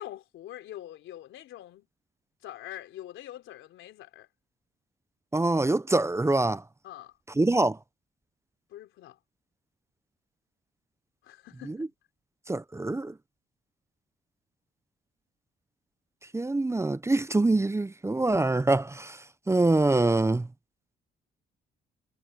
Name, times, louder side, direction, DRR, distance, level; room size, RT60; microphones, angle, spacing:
voice 1, 0.0-1.9 2.4-4.3 6.8-7.2 8.7-9.2 11.2-11.9, left 13 dB, 85° left, 3.6 m, -44 dB
voice 2, 5.3-6.6 7.4-7.8 12.5-13.1 16.3-19.2 19.5-20.5, right 2 dB, 15° right, 0.7 m, -24 dB
cardioid pair, 90°, 20 cm